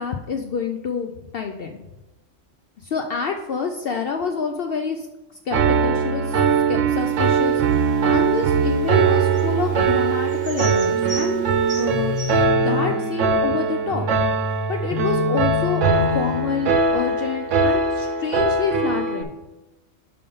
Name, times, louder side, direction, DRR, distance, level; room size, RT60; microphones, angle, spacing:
voice 1, 0.0-1.8 2.8-5.1 5.5-6.4 6.7-11.4 11.7-12.2 12.6-14.1 14.7-15.9 16.1-19.3, left 5 dB, 60° left, 5 dB, 0.6 m, -27 dB
Piano, 5.5-19.2, right 5 dB, 75° right, 1.0 m, -21 dB
sound 1, 7.0-12.4, right 1 dB, 30° right, 2.3 m, -39 dB
sound 2, 10.9-16.9, left 5 dB, 25° left, 0.6 m, -29 dB
5.6 x 5.4 x 5.3 m, 1.0 s
omnidirectional pair, 1.3 m